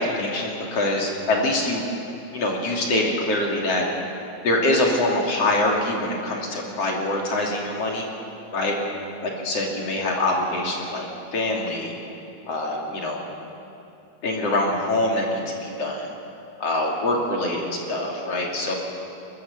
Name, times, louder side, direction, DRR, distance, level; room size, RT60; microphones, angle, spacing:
voice 1, 0.0-1.8 2.3-3.9 4.4-8.1 8.5-8.8 9.2-11.1 11.3-11.9 12.5-13.2 14.2-16.1 16.6-18.7, left 1 dB, 45° left, 0 dB, 3.1 m, -24 dB
21.5 x 20.5 x 7.0 m, 3.0 s
omnidirectional pair, 4.4 m